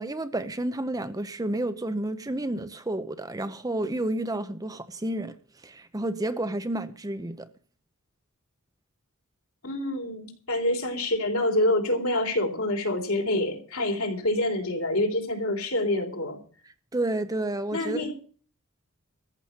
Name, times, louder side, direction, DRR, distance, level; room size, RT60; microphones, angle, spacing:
voice 1, 0.0-5.4 5.6-7.5 16.9-18.1, right 1 dB, 15° right, 0.7 m, -30 dB
voice 2, 9.6-16.4 17.7-18.1, left 1 dB, 65° left, 3.6 m, -26 dB
14.5 x 6.0 x 9.7 m
head